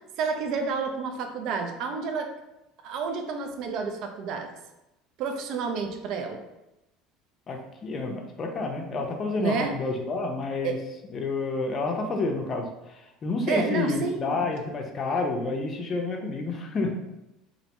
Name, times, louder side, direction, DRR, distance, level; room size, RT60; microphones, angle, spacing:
voice 1, 0.2-2.3 2.8-4.5 5.2-6.4 9.4-9.8 10.6-10.8 13.5-14.4, right 5 dB, 65° right, 5 dB, 0.3 m, -30 dB
voice 2, 7.5-10.8 11.0-17.0, left 3 dB, 40° left, 2 dB, 0.5 m, -29 dB
2.5 x 2.1 x 2.8 m, 0.94 s
hypercardioid pair, 80°, 0 cm